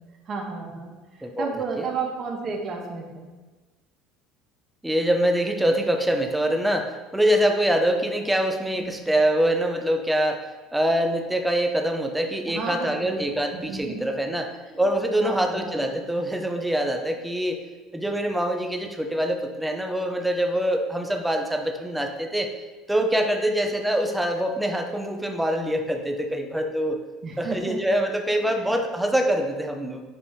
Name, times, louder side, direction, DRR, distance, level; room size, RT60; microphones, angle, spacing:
voice 1, 0.3-3.3 8.8-9.0 12.5-13.3 13.5-14.1 14.7-14.9 15.2-15.9 27.2-27.8 28.4-28.7, right 4 dB, 35° right, 0 dB, 1.2 m, -33 dB
voice 2, 1.2-1.5 1.8-1.9 4.8-14.5 14.8-17.6 17.9-22.5 22.9-27.0 27.4-30.0, right 1 dB, 5° right, 4 dB, 0.7 m, -24 dB
5.4 x 4.9 x 5.6 m, 1.3 s
cardioid pair, 150°, 0 cm